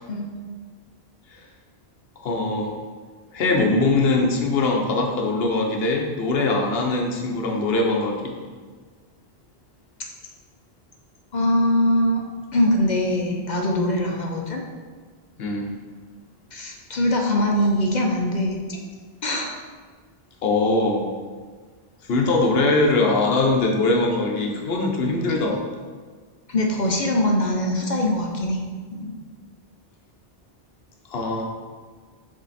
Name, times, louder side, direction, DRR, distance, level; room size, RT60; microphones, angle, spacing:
voice 1, 2.2-2.7 3.3-8.4 15.4-15.7 20.4-21.1 22.0-25.6 31.1-31.4, left 2 dB, 70° left, 1 dB, 1.1 m, -22 dB
voice 2, 11.3-12.2 12.5-14.6 16.5-18.8 19.2-19.5 26.5-28.6 28.9-29.1, left 1 dB, 50° left, 0 dB, 0.8 m, -22 dB
7.1 x 3.6 x 4.1 m, 1.5 s
omnidirectional pair, 1.1 m